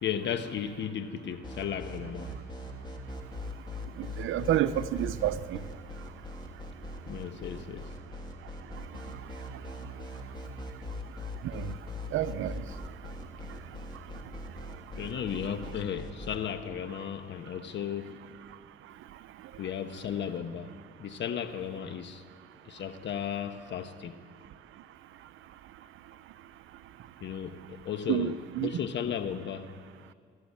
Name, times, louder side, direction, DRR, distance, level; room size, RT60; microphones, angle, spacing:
voice 1, 0.0-2.4 7.1-7.9 15.0-18.2 19.6-20.7 21.0-22.2 22.6-24.2 27.2-29.8, left 8 dB, 65° left, 1.3 m, -35 dB
sound 1, 1.4-16.4, left 2 dB, 20° left, 2.9 m, -40 dB
voice 2, 4.2-5.6 11.5-11.6 12.1-12.5 28.1-28.3 28.6-28.7, right 13 dB, 80° right, 0.8 m, -28 dB
23.0 x 13.5 x 8.6 m
cardioid pair, 90°, 20 cm